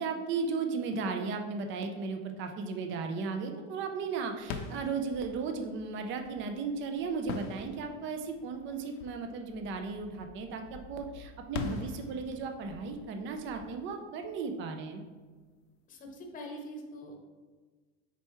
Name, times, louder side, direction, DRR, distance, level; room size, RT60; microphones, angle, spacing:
voice 1, 0.0-15.0, right 4 dB, 35° right, 5 dB, 0.6 m, -35 dB
sound 1, 4.4-15.0, left 5 dB, 55° left, 0.7 m, -44 dB
voice 2, 15.9-17.2, equal, 25° left, 2 dB, 0.9 m, -43 dB
6.9 x 4.5 x 3.0 m, 1.4 s
supercardioid pair, 145°, 36 cm